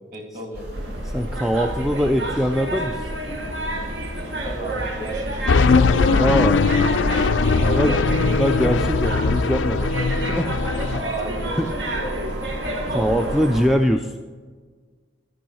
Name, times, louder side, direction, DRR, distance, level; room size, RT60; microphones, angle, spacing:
voice 1, 0.1-0.6 4.2-5.5 6.0-6.6 7.5-7.9 10.9-11.6 11.9-12.2, right 1 dB, 40° right, 1 dB, 2.3 m, -33 dB
sound 1, 0.5-13.7, right 1 dB, 55° right, 2.4 m, -34 dB
sound 2, 0.7-13.6, right 1 dB, 75° right, 1.4 m, -30 dB
voice 2, 1.1-3.1 6.2-6.6 7.6-9.9 10.3-10.5 11.6-11.7 12.9-14.1, equal, ahead, 5 dB, 0.3 m, -22 dB
sound 3, 5.5-11.0, left 4 dB, 80° left, 0.5 m, -20 dB
13.5 x 5.4 x 6.4 m, 1.5 s
head